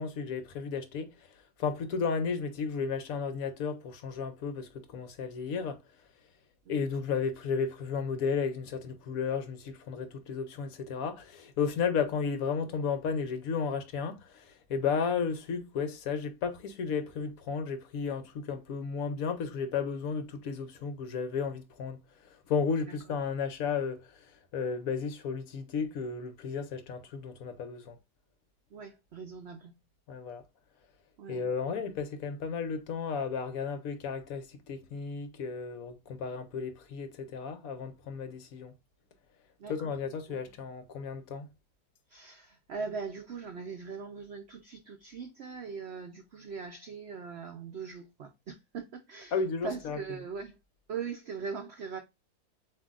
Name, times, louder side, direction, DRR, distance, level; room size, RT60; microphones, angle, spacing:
voice 1, 0.0-5.8 6.7-28.0 30.1-30.4 31.3-38.7 39.7-41.5 49.3-50.0, left 5 dB, 70° left, 0.9 m, -33 dB
voice 2, 28.7-29.7 31.2-31.4 39.6-39.9 40.3-40.4 42.1-50.6 50.9-52.0, right 5 dB, 80° right, 0.5 m, -41 dB
7.2 x 2.7 x 2.4 m
omnidirectional pair, 1.8 m